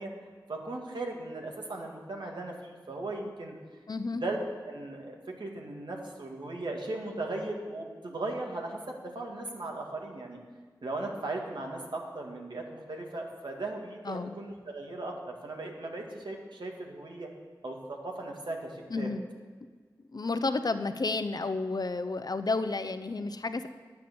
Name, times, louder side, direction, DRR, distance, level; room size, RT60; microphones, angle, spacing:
voice 1, 0.0-3.5 4.1-4.4 4.7-10.4 10.8-17.3 17.6-19.1, right 2 dB, 80° right, 0 dB, 2.1 m, -37 dB
voice 2, 3.9-4.2 14.1-14.3 18.9-19.3 20.1-23.7, left 3 dB, 60° left, 9 dB, 0.7 m, -31 dB
10.0 x 9.2 x 7.0 m, 1.5 s
cardioid pair, 45°, 8 cm